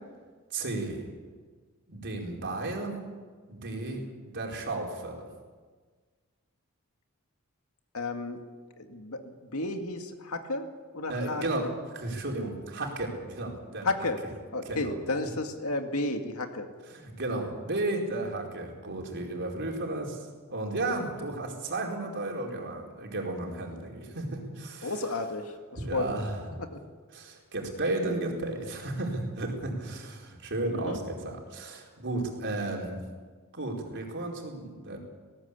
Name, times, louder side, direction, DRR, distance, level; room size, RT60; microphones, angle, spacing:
voice 1, 0.5-1.1 1.9-3.0 3.5-5.3 11.1-13.9 14.6-14.9 16.9-24.9 25.8-26.5 27.1-33.0 33.5-35.0, right 2 dB, 55° right, 0 dB, 4.5 m, -33 dB
voice 2, 7.9-8.4 8.8-10.7 10.9-11.7 13.8-14.2 14.5-16.7 24.8-25.4 25.9-26.2 26.6-26.8 30.7-31.0, left 2 dB, 75° left, 5 dB, 2.2 m, -32 dB
20.0 x 18.0 x 8.6 m, 1.5 s
head